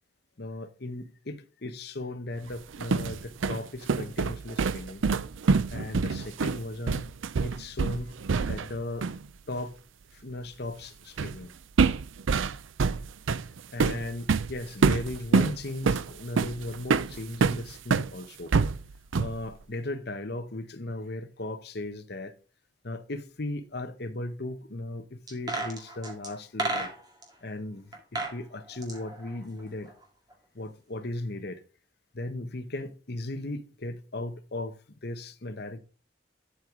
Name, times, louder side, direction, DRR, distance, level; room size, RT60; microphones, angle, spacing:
voice 1, 0.4-5.0 5.7-7.1 7.4-8.1 8.4-9.1 9.5-9.7 10.1-11.5 13.7-18.5 19.2-22.3 22.8-26.9 27.4-29.9 30.5-31.6 32.1-34.7 35.0-35.8, left 2 dB, 55° left, 1.0 m, -37 dB
sound 1, 2.5-8.8 9.0-9.2 11.2-11.4 11.8-18.1 18.5-19.4, right 4 dB, 85° right, 0.5 m, -26 dB
sound 2, 25.3-27.3 27.9-28.4 28.7-30.0 30.3-30.4, right 2 dB, 20° right, 2.0 m, -33 dB
11.5 x 4.7 x 3.7 m
head